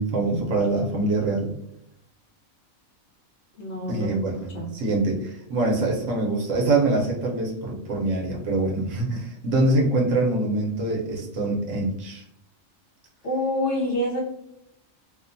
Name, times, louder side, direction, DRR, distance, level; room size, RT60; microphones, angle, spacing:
voice 1, 0.0-1.5 3.9-12.2, right 2 dB, 70° right, -1 dB, 1.0 m, -24 dB
voice 2, 3.6-4.1 4.5-4.7 13.2-14.2, left 1 dB, 60° left, -3 dB, 1.1 m, -26 dB
2.8 x 2.1 x 2.6 m, 0.78 s
omnidirectional pair, 1.4 m